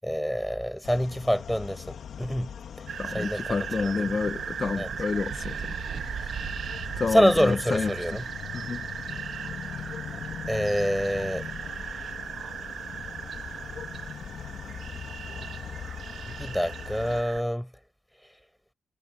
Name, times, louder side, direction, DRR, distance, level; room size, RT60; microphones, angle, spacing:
voice 1, 0.0-2.5 3.1-4.0 4.8-4.9 7.1-8.3 10.5-11.5 16.3-17.7, equal, ahead, 7.9 m, -26 dB
sound 1, 0.8-17.2, left 8 dB, 75° left, 2.7 m, -41 dB
sound 2, 2.9-17.4, right 8 dB, 70° right, 1.4 m, -37 dB
voice 2, 3.0-5.7 7.0-7.9 8.5-8.8, left 4 dB, 45° left, 1.8 m, -29 dB
cardioid pair, 65°, 0 cm